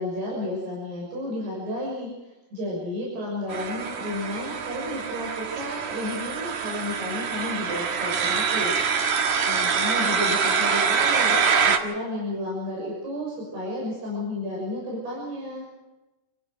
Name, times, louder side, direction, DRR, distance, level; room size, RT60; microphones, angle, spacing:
voice 1, 0.0-8.9 9.4-15.7, left 1 dB, 85° right, -3 dB, 8.5 m, -32 dB
sound 1, 3.5-11.8, right 6 dB, 55° right, 2.6 m, -25 dB
28.0 x 15.5 x 6.2 m, 1.0 s
omnidirectional pair, 4.5 m